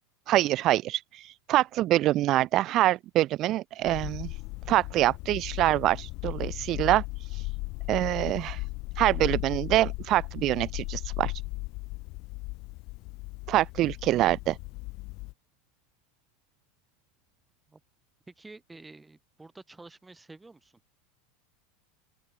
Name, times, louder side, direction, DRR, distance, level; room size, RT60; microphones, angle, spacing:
voice 1, 0.3-4.3 4.7-7.0 7.3-7.4 7.9-8.6 9.0-11.3 13.5-14.6, right 15 dB, 45° right, 0.3 m, -25 dB
sound 1, 3.8-15.3, left 24 dB, 55° left, 0.6 m, -36 dB
voice 2, 18.3-20.8, right 3 dB, 10° right, 6.3 m, -49 dB
open air
hypercardioid pair, 85°, 0 cm